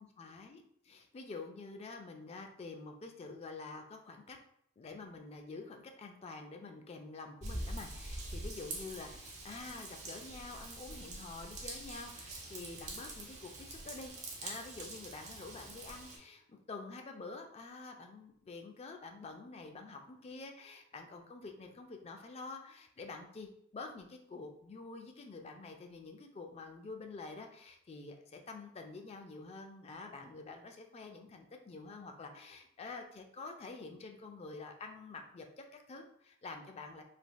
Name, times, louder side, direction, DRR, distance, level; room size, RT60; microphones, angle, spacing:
voice 1, 0.0-4.4 4.8-14.1 14.4-37.0, left 3 dB, 30° left, 4 dB, 0.3 m, -48 dB
Raindrop / Vehicle horn car horn honking / Trickle dribble, 7.4-16.2, right 2 dB, 30° right, 0.7 m, -45 dB
3.3 x 2.9 x 2.2 m, 0.69 s
head